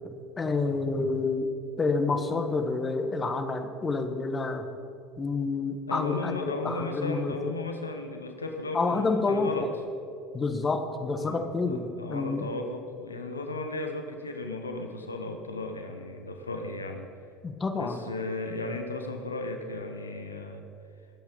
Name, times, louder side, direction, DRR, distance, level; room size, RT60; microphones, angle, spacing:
voice 1, 0.4-1.5 1.8-4.6 5.2-7.5 8.7-9.7 10.3-12.5 17.4-18.0, left 3 dB, 25° left, 7 dB, 1.4 m, -28 dB
voice 2, 5.9-9.7 11.2-17.1 17.8-20.6, left 2 dB, 90° left, 5 dB, 1.0 m, -35 dB
21.0 x 8.1 x 5.3 m, 2.6 s
figure-of-eight pair, 70°, 0 cm